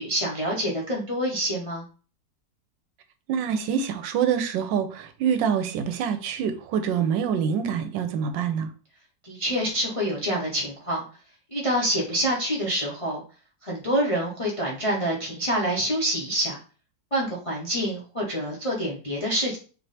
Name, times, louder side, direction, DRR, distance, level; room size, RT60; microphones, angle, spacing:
voice 1, 0.0-1.8 9.2-11.0 11.5-13.2 13.6-16.6 17.1-19.6, equal, 35° left, 0.5 m, -26 dB
voice 2, 3.3-8.7, right 7 dB, 85° right, 1.3 m, -26 dB
3.3 x 3.0 x 4.1 m
omnidirectional pair, 2.0 m